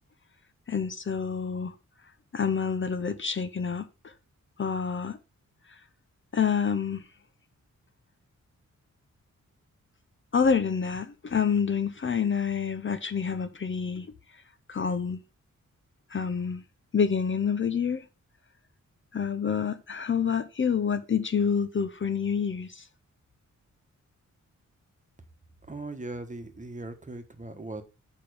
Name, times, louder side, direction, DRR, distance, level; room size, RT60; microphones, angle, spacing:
voice 1, 0.7-1.7 2.3-3.8 4.6-5.2 6.3-7.0 10.3-14.1 14.7-15.2 16.1-16.6 16.9-18.0 19.1-22.8, left 6 dB, 40° left, 0.7 m, -27 dB
voice 2, 25.7-27.8, right 2 dB, 25° right, 1.2 m, -39 dB
6.7 x 5.3 x 4.9 m
wide cardioid pair, 110°, 30 cm